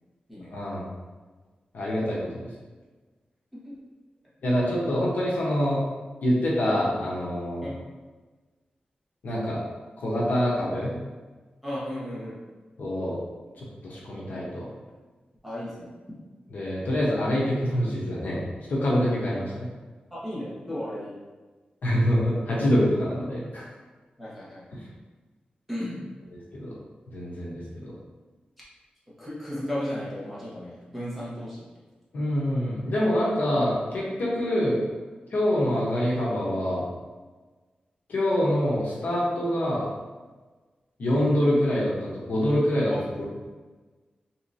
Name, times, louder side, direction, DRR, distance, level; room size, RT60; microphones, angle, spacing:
voice 1, 0.5-0.9 1.7-2.5 4.4-5.8 6.2-7.7 9.2-9.6 10.0-10.9 12.8-13.2 13.6-14.7 16.5-19.7 21.8-23.7 24.7-24.9 26.5-26.7 27.1-27.9 32.1-34.8 35.3-36.9 38.1-39.9 41.0-42.9 43.2-43.3, equal, 80° left, -6 dB, 0.8 m, -25 dB
voice 2, 11.6-12.4 15.4-15.9 20.1-21.1 24.2-24.6 25.7-26.0 29.2-31.6, equal, ahead, -9 dB, 1.3 m, -34 dB
3.7 x 2.8 x 2.6 m, 1.3 s
wide cardioid pair, 110°, 3 cm